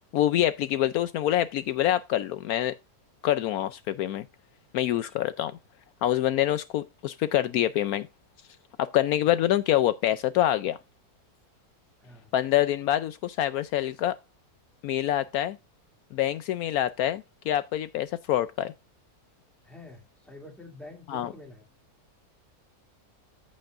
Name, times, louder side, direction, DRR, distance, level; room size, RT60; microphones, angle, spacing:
voice 1, 0.1-2.7 3.2-4.2 4.7-5.5 6.0-8.1 8.8-10.8 12.3-14.2 14.8-15.6 16.1-18.7 21.1-21.3, left 12 dB, 75° left, 1.0 m, -26 dB
voice 2, 4.9-5.3 12.0-12.3 19.6-21.7, left 2 dB, ahead, 2.4 m, -47 dB
14.0 x 5.3 x 2.5 m
omnidirectional pair, 1.6 m